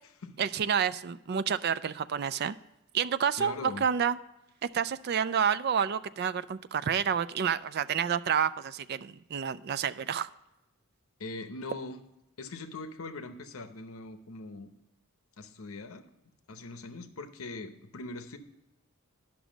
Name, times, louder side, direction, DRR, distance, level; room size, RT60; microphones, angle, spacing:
voice 1, 0.4-2.6 2.9-4.2 4.7-10.3, right 7 dB, 45° right, 14 dB, 0.3 m, -29 dB
voice 2, 3.4-3.9 11.2-12.0 12.4-14.7 15.4-16.1 16.5-18.4, left 3 dB, 75° left, 9 dB, 0.8 m, -41 dB
11.0 x 6.1 x 5.1 m, 0.92 s
head